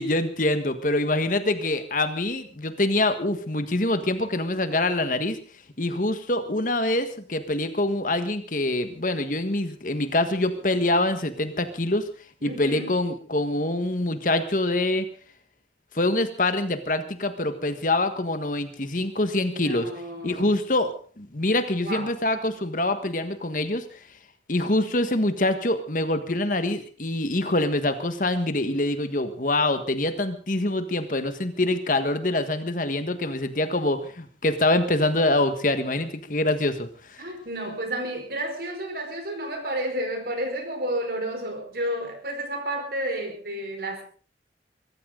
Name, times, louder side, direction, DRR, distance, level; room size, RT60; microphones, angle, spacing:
voice 1, 0.0-5.4 5.8-12.1 12.4-15.0 15.9-19.9 20.2-23.8 24.5-37.2, left 2 dB, 50° left, 9 dB, 1.5 m, -25 dB
voice 2, 12.4-13.0 19.5-20.6 21.8-22.1 37.2-44.0, right 1 dB, 55° right, 4 dB, 4.8 m, -31 dB
23.0 x 14.0 x 3.9 m, 0.41 s
head